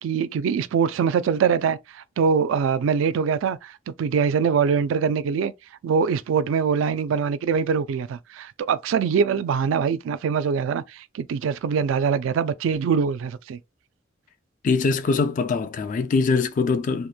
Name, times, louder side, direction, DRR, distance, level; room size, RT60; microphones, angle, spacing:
voice 1, 0.0-5.5 5.8-13.6, right 6 dB, 90° right, 0.3 m, -23 dB
voice 2, 14.6-17.1, left 4 dB, 40° left, 0.3 m, -22 dB
2.9 x 2.1 x 2.3 m
head